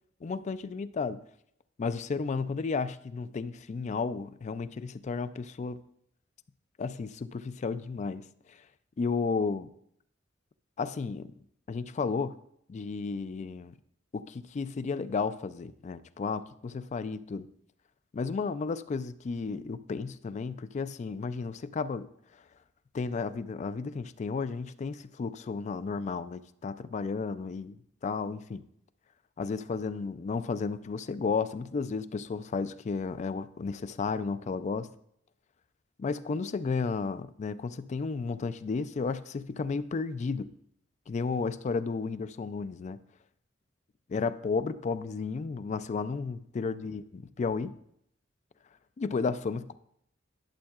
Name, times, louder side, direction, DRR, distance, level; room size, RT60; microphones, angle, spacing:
voice 1, 0.2-1.2 1.8-5.8 6.8-8.6 9.0-9.7 10.8-11.3 11.7-12.4 12.7-13.7 14.1-17.5 18.1-22.1 22.9-28.6 29.4-34.9 36.0-40.5 41.1-43.0 44.1-47.8 49.0-49.7, left 4 dB, 40° left, 14 dB, 0.3 m, -33 dB
11.5 x 7.2 x 2.4 m, 0.71 s
head